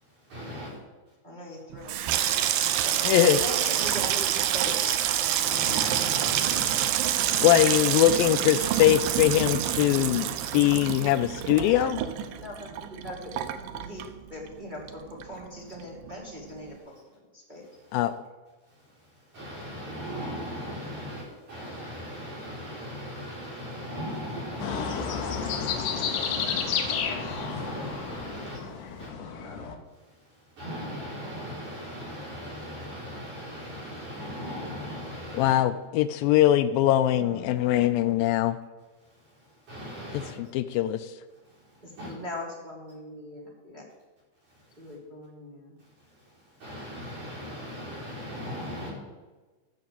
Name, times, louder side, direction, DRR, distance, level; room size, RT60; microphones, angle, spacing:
voice 1, 0.0-0.8 2.3-2.7 5.4-7.7 17.6-18.0 18.7-29.1 29.9-35.6 39.0-40.4 41.4-42.1 44.5-45.0 45.8-48.9, equal, 50° right, -9 dB, 6.5 m, -39 dB
voice 2, 1.2-1.9 2.8-2.9 3.2-5.0 12.4-14.0 14.3-16.7 17.3-17.6 29.2-29.7 37.1-37.9 41.8-43.8 44.8-45.8, left 1 dB, 20° right, -4 dB, 1.2 m, -40 dB
Water tap faucet / Sink (filling or washing), 1.7-14.6 14.9-15.5 15.8-16.1, right 11 dB, 75° right, 2.2 m, -27 dB
voice 3, 3.0-3.4 7.4-12.0 17.9-18.1 35.3-38.6 40.1-41.1, left 13 dB, 85° left, 10 dB, 2.1 m, -22 dB
sound 1, 24.6-29.7, left 6 dB, 65° left, 2.2 m, -31 dB
13.0 x 6.8 x 7.7 m, 1.3 s
omnidirectional pair, 4.6 m